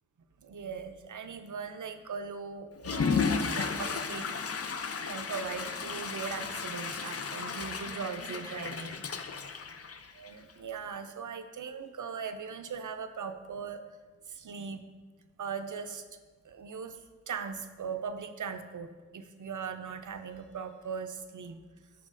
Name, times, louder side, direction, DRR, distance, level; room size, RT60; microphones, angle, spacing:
voice 1, 0.4-4.3 5.0-9.0 10.1-13.8 14.2-14.8 15.4-16.2 16.4-17.0 17.3-21.6, right 6 dB, 80° right, 8 dB, 0.5 m, -39 dB
Water / Toilet flush, 2.8-10.5, left 5 dB, 50° left, 0.4 m, -34 dB
10.0 x 4.5 x 2.5 m, 1.4 s
wide cardioid pair, 55°, 30 cm